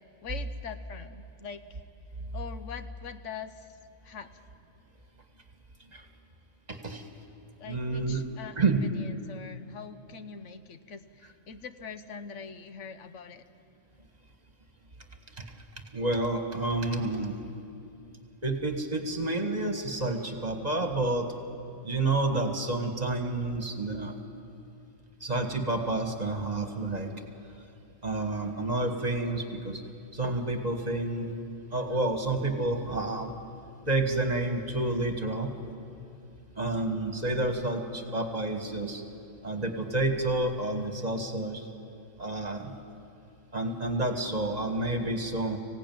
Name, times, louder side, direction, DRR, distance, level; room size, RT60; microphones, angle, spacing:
voice 1, 0.2-1.8 2.3-3.7 4.0-4.3 7.6-13.4, left 6 dB, 75° left, 10 dB, 1.2 m, -43 dB
voice 2, 6.7-7.1 7.7-8.2 8.6-8.8 15.3-15.5 15.8-17.4 18.4-21.3 21.8-24.2 25.2-27.1 28.0-29.8 30.1-31.3 31.7-33.3 33.9-35.5 36.6-39.0 39.4-41.7 42.2-42.8 43.5-45.6, right 2 dB, 35° right, 4 dB, 1.7 m, -29 dB
25.0 x 16.5 x 9.3 m, 2.6 s
omnidirectional pair, 1.3 m